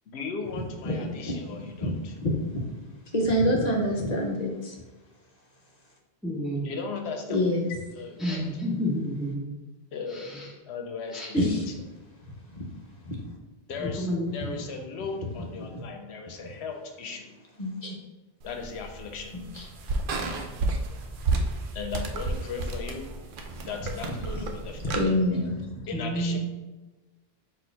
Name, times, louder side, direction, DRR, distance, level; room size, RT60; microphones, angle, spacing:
voice 1, 0.1-2.1 6.5-7.6 8.0-8.4 9.9-11.6 13.7-17.4 18.4-19.4 21.7-23.1 23.7-25.0 25.9-26.4, left 5 dB, 90° left, 4 dB, 0.9 m, -37 dB
voice 2, 0.8-1.3 1.6-1.9 2.2-2.5 3.1-4.7 7.3-7.7 11.4-11.6 12.6-12.7 13.0-13.2 17.6-18.0 19.3-19.4 24.8-25.8, left 1 dB, 45° left, 0 dB, 0.8 m, -26 dB
voice 3, 6.2-6.7 8.2-9.4 10.3-10.4 11.1-11.3 13.8-14.6 25.9-26.4, equal, ahead, -5 dB, 0.8 m, -30 dB
sound 1, 18.4-25.0, right 3 dB, 60° right, 0.6 m, -32 dB
4.2 x 2.5 x 4.7 m, 1.2 s
omnidirectional pair, 1.1 m